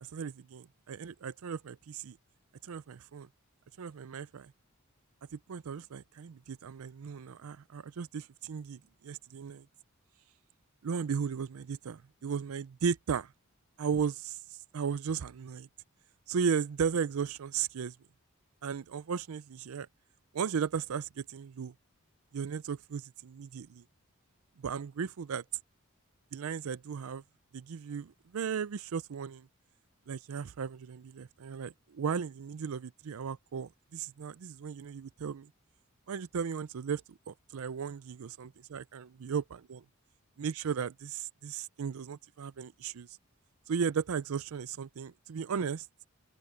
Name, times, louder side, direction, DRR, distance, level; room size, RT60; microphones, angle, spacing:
voice 1, 0.0-2.2 2.6-3.3 3.8-4.5 5.3-9.7 10.8-13.3 13.8-15.7 16.3-18.0 18.6-19.9 20.3-21.7 22.3-23.8 24.6-25.4 26.3-27.2 27.5-29.5 30.1-35.5 36.1-39.8 40.4-43.2 43.7-45.9, right 6 dB, 80° right, 0.5 m, -36 dB
open air
head